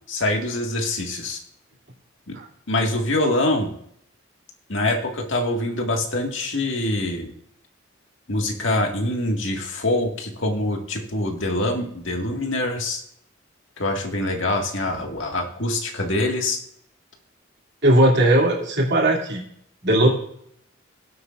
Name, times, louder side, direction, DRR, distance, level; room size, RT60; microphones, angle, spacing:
voice 1, 0.1-1.4 2.3-2.4 2.7-3.7 4.7-7.3 8.3-13.0 13.8-16.6, left 1 dB, 70° left, 2 dB, 2.0 m, -24 dB
voice 2, 17.8-19.4 19.8-20.1, right 1 dB, 60° right, -2 dB, 2.9 m, -18 dB
19.0 x 8.4 x 2.5 m, 0.68 s
head